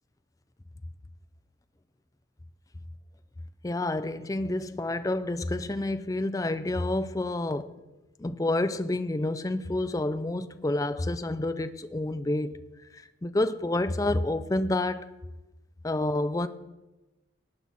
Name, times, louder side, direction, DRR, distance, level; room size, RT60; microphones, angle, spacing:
voice 1, 3.6-7.7 8.2-12.5 12.9-15.1 15.8-16.5, left 2 dB, 15° left, 0.4 m, -29 dB
18.0 x 6.1 x 4.2 m
head